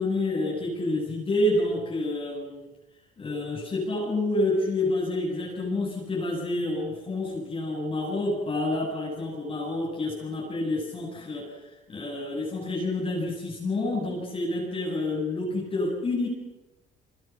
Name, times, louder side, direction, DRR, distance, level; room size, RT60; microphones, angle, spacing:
voice 1, 0.0-2.7 3.2-11.6 11.9-16.3, left 2 dB, 35° left, -4 dB, 7.5 m, -28 dB
28.5 x 24.5 x 6.1 m, 1.0 s
cardioid pair, 110°, 17 cm